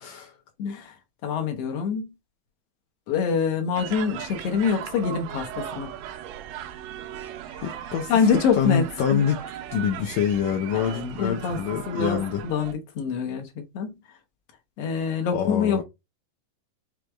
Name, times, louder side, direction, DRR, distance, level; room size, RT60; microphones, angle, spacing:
voice 1, 0.0-0.3 7.6-9.4 9.7-12.4 15.3-15.8, left 8 dB, 80° left, 1.6 m, -26 dB
voice 2, 0.6-0.9 1.2-2.1 3.1-5.9 8.1-8.8 9.1-9.2 10.7-13.9 14.8-15.8, left 6 dB, 65° left, 1.7 m, -25 dB
sound 1, 3.8-12.7, right 10 dB, 75° right, 2.0 m, -38 dB
6.2 x 2.5 x 3.3 m
omnidirectional pair, 3.9 m